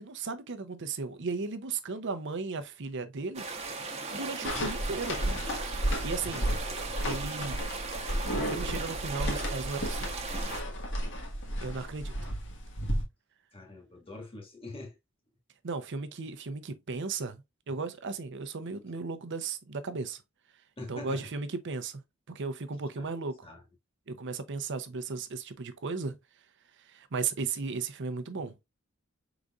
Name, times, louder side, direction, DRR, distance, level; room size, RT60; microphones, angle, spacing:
voice 1, 0.0-3.7 4.1-5.2 6.0-6.5 7.0-7.6 8.3-10.1 11.6-12.3 15.6-20.2 20.9-22.0 22.3-23.5 24.1-26.2 26.8-28.6, right 4 dB, 60° right, 0.7 m, -36 dB
sound 1, 3.3-10.6, right 3 dB, 30° right, 0.9 m, -38 dB
sound 2, 4.4-13.0, equal, 60° left, 1.4 m, -33 dB
voice 2, 13.5-14.9 20.8-21.3 23.4-23.6, left 2 dB, 25° left, 1.5 m, -43 dB
5.0 x 3.9 x 2.4 m
head